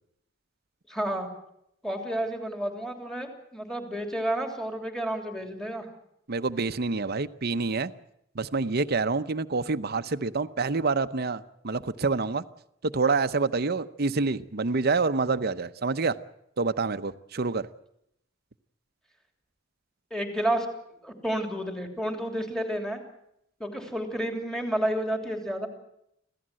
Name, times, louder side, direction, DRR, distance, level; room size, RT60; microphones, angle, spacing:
voice 1, 0.9-1.3 1.8-5.8 20.1-20.7 21.0-23.0 23.6-25.7, right 1 dB, 5° left, 4 dB, 3.1 m, -30 dB
voice 2, 6.3-7.9 8.3-12.4 12.8-16.2 16.6-17.7, right 4 dB, 55° right, 12 dB, 0.8 m, -27 dB
25.5 x 16.0 x 7.6 m, 0.76 s
head